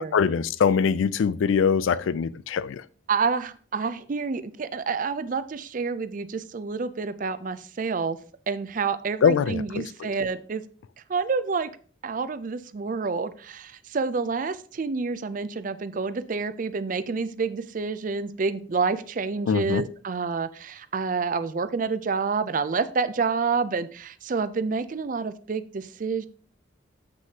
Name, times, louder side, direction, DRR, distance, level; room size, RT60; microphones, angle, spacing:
voice 1, 0.1-2.8 9.2-10.1 19.5-19.8, left 6 dB, 90° left, 0.4 m, -23 dB
voice 2, 3.1-8.2 8.5-10.6 11.1-11.7 12.0-26.3, right 4 dB, 45° right, 0.4 m, -28 dB
7.5 x 6.2 x 2.8 m
head